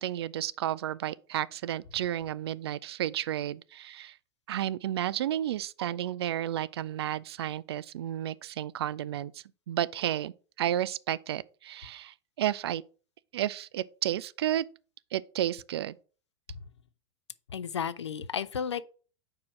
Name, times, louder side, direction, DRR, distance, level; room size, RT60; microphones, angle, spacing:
voice 1, 0.0-4.2 4.5-12.8 13.3-14.7 15.1-16.0, right 12 dB, 65° right, 0.4 m, -32 dB
voice 2, 17.5-18.8, left 7 dB, 75° left, 0.5 m, -33 dB
4.8 x 4.7 x 5.9 m
figure-of-eight pair, 90°, 15 cm